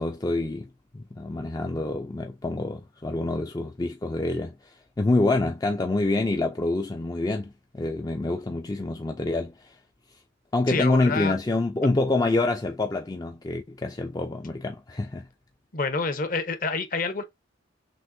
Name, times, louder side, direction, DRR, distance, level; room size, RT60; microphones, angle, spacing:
voice 1, 0.0-9.8 10.5-15.3, left 2 dB, 20° left, 0.4 m, -27 dB
voice 2, 10.7-11.3 15.7-17.2, left 4 dB, 40° left, 0.7 m, -27 dB
6.2 x 2.5 x 2.6 m
head